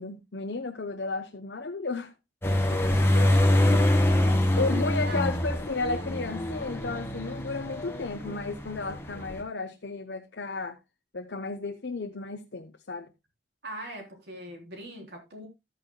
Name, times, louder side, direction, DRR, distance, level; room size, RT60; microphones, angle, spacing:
voice 1, 0.0-2.1 2.5-2.8 3.1-3.5 4.6-10.8 11.1-13.1, left 3 dB, 70° left, 0.8 m, -33 dB
sound 1, 2.4-9.4, left 1 dB, 15° left, 1.7 m, -25 dB
voice 2, 4.2-5.2 13.6-15.5, right 1 dB, 70° right, 3.6 m, -42 dB
13.0 x 8.9 x 2.2 m
head